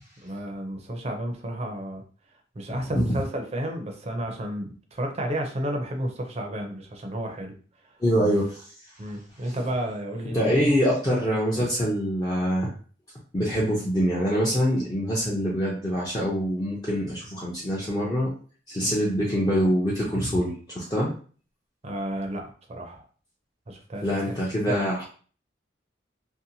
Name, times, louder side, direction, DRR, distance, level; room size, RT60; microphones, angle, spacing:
voice 1, 0.2-2.0 2.5-7.5 9.0-10.6 18.8-18.9 21.8-23.1 23.7-24.2 24.7-24.8, right 1 dB, 35° right, 3 dB, 0.5 m, -32 dB
voice 2, 8.0-8.6 10.3-12.7 13.3-18.3 18.7-21.1 24.0-25.0, equal, 20° left, -5 dB, 0.5 m, -24 dB
2.7 x 2.1 x 2.7 m, 0.41 s
head